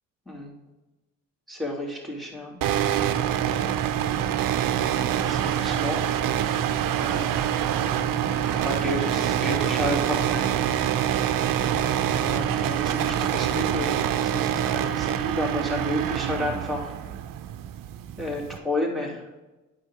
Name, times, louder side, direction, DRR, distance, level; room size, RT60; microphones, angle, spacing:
voice 1, 1.5-2.6 4.9-6.4 6.9-7.4 8.4-10.6 11.6-16.9 18.2-19.2, left 1 dB, ahead, -3 dB, 2.8 m, -32 dB
sound 1, 2.6-18.6, right 10 dB, 55° right, 0.7 m, -25 dB
9.0 x 6.0 x 3.7 m, 1.1 s
hypercardioid pair, 55°, 39 cm